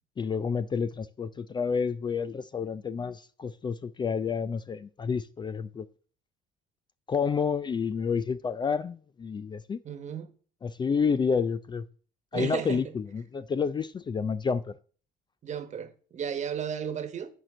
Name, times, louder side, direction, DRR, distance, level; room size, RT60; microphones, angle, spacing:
voice 1, 0.2-5.9 7.1-9.8 10.6-11.8 12.3-14.8, left 6 dB, 25° left, 0.4 m, -29 dB
voice 2, 9.8-10.3 12.3-12.8 15.4-17.3, right 8 dB, 45° right, 1.3 m, -34 dB
9.1 x 4.4 x 6.1 m
cardioid pair, 110°, 17 cm